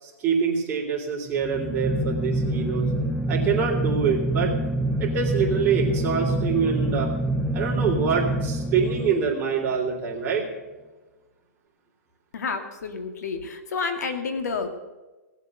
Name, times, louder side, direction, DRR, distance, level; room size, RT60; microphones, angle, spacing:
voice 1, 0.0-2.9 3.3-4.5 5.0-7.1 7.5-10.5, right 6 dB, 20° right, -2 dB, 3.7 m, -25 dB
sound 1, 1.3-9.7, right 1 dB, ahead, 0.4 m, -26 dB
voice 2, 12.3-14.7, left 4 dB, 80° left, 7 dB, 2.2 m, -30 dB
18.0 x 8.4 x 6.7 m, 1.2 s
hypercardioid pair, 155°, 9 cm